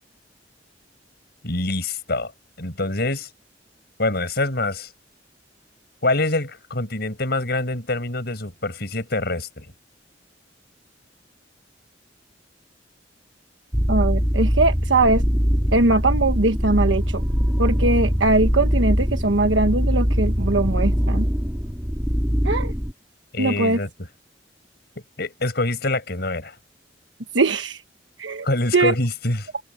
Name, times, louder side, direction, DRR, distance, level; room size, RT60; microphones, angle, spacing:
voice 1, 1.4-2.3 2.6-3.3 4.0-4.9 6.0-9.6 23.3-23.9 25.2-26.6 28.4-29.4, left 2 dB, 60° left, 6.6 m, -25 dB
sound 1, 13.7-22.9, equal, 10° right, 2.5 m, -22 dB
voice 2, 13.9-15.2 15.7-17.2 17.6-21.3 22.4-22.7 23.4-23.8 27.3-27.8 28.2-28.5 28.7-28.9, right 2 dB, 85° right, 1.3 m, -21 dB
open air
head